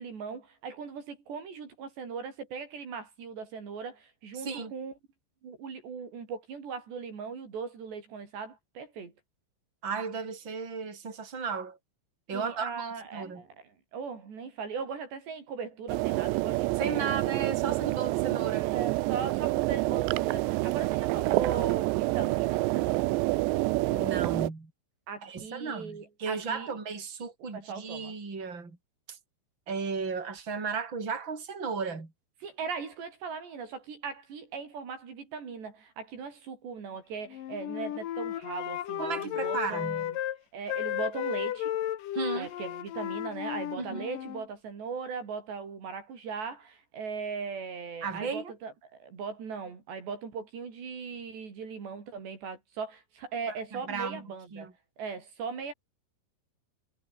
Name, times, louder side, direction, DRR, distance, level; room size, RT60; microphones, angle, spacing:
voice 1, 0.0-4.9 5.4-9.1 12.3-13.6 13.9-17.2 18.6-23.1 25.1-26.7 27.6-28.2 32.4-40.2 40.5-41.7 42.3-54.7 55.0-55.7, right 5 dB, 65° right, 7.0 m, -39 dB
voice 2, 9.8-11.8 12.3-13.4 16.8-18.7 23.9-24.7 25.2-28.8 29.1-29.2 29.7-32.1 39.0-40.1 42.1-42.5 43.8-44.1 48.0-48.5 53.5-54.2 54.5-54.7, right 5 dB, 25° right, 5.8 m, -35 dB
sound 1, 15.9-24.5, right 22 dB, 85° right, 2.7 m, -28 dB
Wind instrument woodwind instrument, 37.3-40.4 40.7-44.4, left 12 dB, 60° left, 2.4 m, -34 dB
omnidirectional pair, 5.4 m